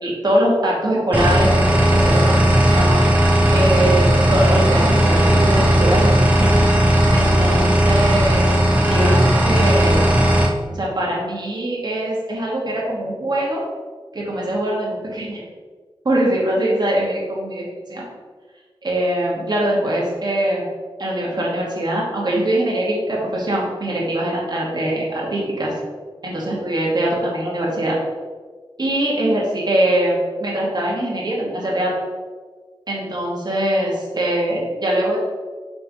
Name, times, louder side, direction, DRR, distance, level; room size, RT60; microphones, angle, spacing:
voice 1, 0.0-3.0 3.5-6.6 7.1-8.5 8.9-10.0 10.7-13.6 14.1-15.4 16.0-18.0 18.8-20.6 21.0-25.7 26.2-28.0 28.8-31.9 32.9-35.2, right 1 dB, 45° right, -5 dB, 2.3 m, -22 dB
sound 1, 1.1-10.5, equal, 15° right, 1.4 m, -16 dB
6.8 x 3.8 x 6.3 m, 1.5 s
wide cardioid pair, 105°, 9 cm